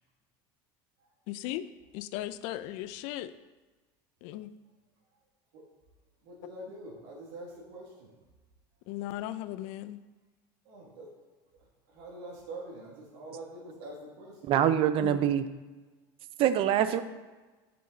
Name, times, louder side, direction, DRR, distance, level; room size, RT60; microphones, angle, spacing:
voice 1, 1.3-1.7 1.9-3.3 4.2-4.5 8.9-10.0 15.0-15.2, left 14 dB, 70° left, 14 dB, 0.4 m, -37 dB
voice 2, 6.2-8.1 10.7-11.1 11.9-14.4, right 1 dB, 75° right, -4 dB, 2.1 m, -45 dB
voice 3, 14.4-15.4 16.4-17.0, right 10 dB, 50° right, 12 dB, 0.6 m, -24 dB
6.9 x 6.4 x 3.9 m, 1.3 s
supercardioid pair, 115°, 12 cm